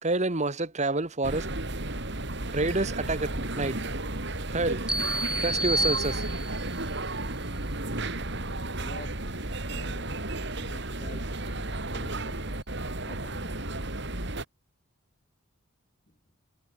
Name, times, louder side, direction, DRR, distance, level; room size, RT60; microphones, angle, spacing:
voice 1, 0.0-1.5 2.5-3.8 4.5-4.8 5.4-6.2, right 2 dB, 35° right, 1.7 m, -28 dB
sound 1, 1.2-14.4, right 2 dB, 60° right, 4.3 m, -33 dB
sound 2, 4.9-6.8, right 1 dB, 5° right, 2.7 m, -29 dB
voice 2, 8.7-10.2 10.6-12.6 13.0-13.7 16.1-16.2, left 1 dB, 35° left, 7.3 m, -48 dB
head